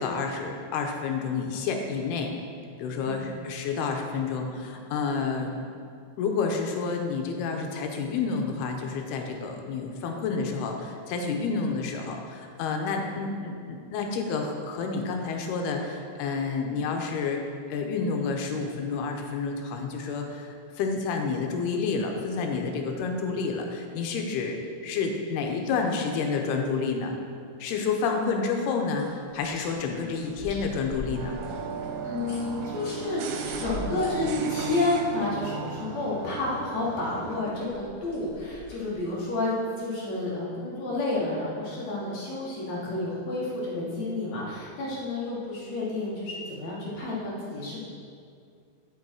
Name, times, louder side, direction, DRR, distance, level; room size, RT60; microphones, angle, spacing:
voice 1, 0.0-2.3 2.8-5.5 6.2-17.4 17.7-24.6 24.8-27.1 27.6-31.4, left 4 dB, 85° left, 3 dB, 2.6 m, -29 dB
voice 2, 3.1-3.4 32.0-47.8, left 2 dB, 55° left, -6 dB, 2.2 m, -30 dB
sound 1, 28.9-34.9 37.4-38.9, left 2 dB, 35° left, 1.5 m, -43 dB
sound 2, 31.1-37.4, right 5 dB, 80° right, 2.5 m, -36 dB
11.0 x 5.5 x 4.5 m, 2.3 s
omnidirectional pair, 4.7 m